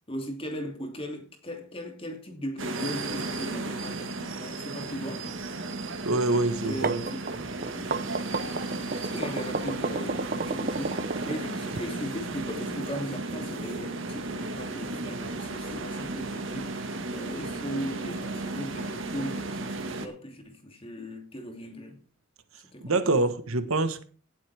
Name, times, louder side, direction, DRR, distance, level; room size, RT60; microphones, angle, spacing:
voice 1, 0.1-5.3 6.6-7.9 8.9-22.0 22.7-23.1, equal, 25° left, 2.8 m, -38 dB
sound 1, 2.6-20.1, right 2 dB, 60° right, 1.8 m, -34 dB
voice 2, 6.0-7.0 7.3-7.4 22.8-24.0, right 2 dB, 75° right, 1.4 m, -25 dB
sound 2, 6.6-11.8, right 3 dB, 45° right, 0.8 m, -32 dB
18.0 x 7.9 x 3.5 m
head